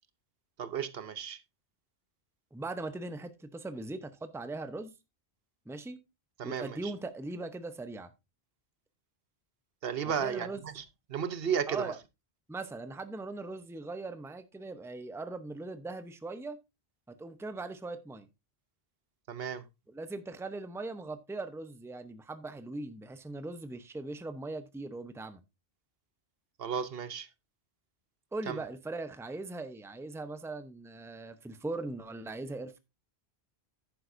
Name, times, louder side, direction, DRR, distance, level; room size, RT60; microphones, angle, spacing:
voice 1, 0.6-1.4 6.4-6.9 9.8-11.9 19.3-19.7 26.6-27.3 28.5-28.6, right 7 dB, 65° right, 0.9 m, -34 dB
voice 2, 2.5-4.9 5.7-6.0 6.4-8.1 10.2-10.6 11.7-12.0 12.5-16.6 17.1-18.3 19.9-25.4 28.3-32.8, right 2 dB, 5° right, 0.7 m, -40 dB
10.5 x 9.4 x 2.6 m
omnidirectional pair, 1.1 m